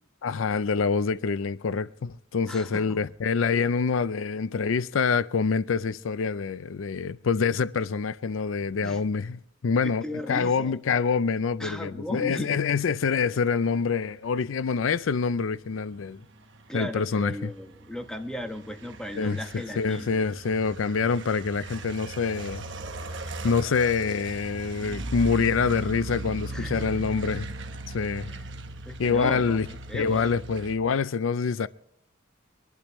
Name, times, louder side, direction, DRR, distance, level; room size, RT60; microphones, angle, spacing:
voice 1, 0.2-16.2 16.7-17.5 19.1-22.6 23.4-27.5 27.9-28.3 29.0-29.7 29.9-31.7, left 5 dB, 75° left, 0.5 m, -26 dB
voice 2, 2.5-3.0 8.8-9.0 9.8-10.8 11.6-12.6 16.7-20.2 26.5-26.9 28.3-29.6 29.9-30.2, left 1 dB, 5° left, 1.3 m, -36 dB
sound 1, 14.2-30.8, right 2 dB, 65° right, 1.2 m, -39 dB
23.5 x 12.0 x 3.1 m
head